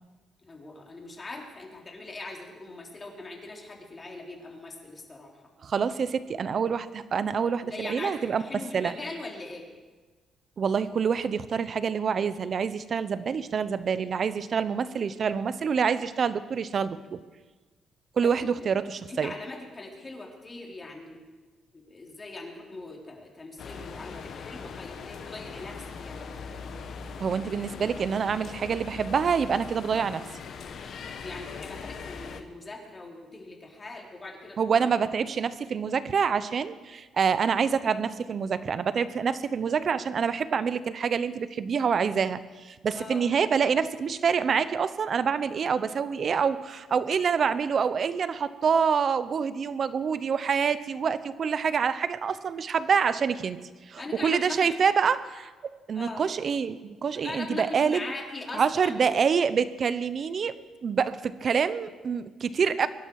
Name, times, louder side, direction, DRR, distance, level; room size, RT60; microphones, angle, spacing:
voice 1, 0.4-5.3 7.6-8.1 8.4-9.7 18.2-18.5 19.1-21.2 21.7-26.3 31.1-34.6 42.9-43.3 54.0-54.7 55.9-56.2 57.2-59.2, left 2 dB, 30° left, 0 dB, 3.8 m, -41 dB
voice 2, 5.6-8.9 10.6-17.2 18.2-19.3 27.2-30.2 34.6-53.6 53.9-55.5 55.9-58.0 58.5-60.5 60.8-62.9, right 6 dB, 50° right, 14 dB, 0.9 m, -26 dB
sound 1, 23.6-32.4, left 5 dB, 65° left, 1.5 m, -40 dB
23.5 x 11.5 x 4.9 m, 1.3 s
cardioid pair, 90°, 0 cm